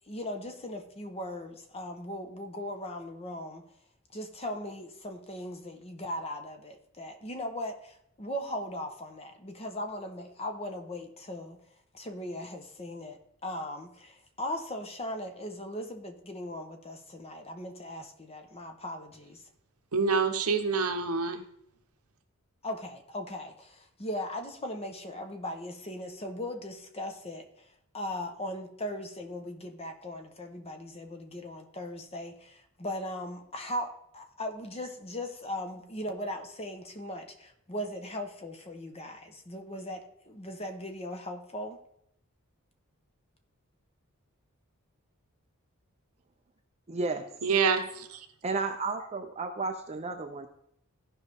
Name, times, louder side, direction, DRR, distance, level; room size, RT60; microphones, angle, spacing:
voice 1, 0.1-3.6 4.1-11.6 11.9-19.4 22.6-27.5 27.9-41.8, left 1 dB, 30° left, 5 dB, 1.1 m, -38 dB
voice 2, 19.9-21.4 47.4-48.3, right 5 dB, 85° right, 6 dB, 1.0 m, -27 dB
voice 3, 46.9-47.3 48.4-50.5, right 3 dB, 30° right, 5 dB, 0.6 m, -32 dB
15.5 x 5.4 x 3.6 m, 0.74 s
head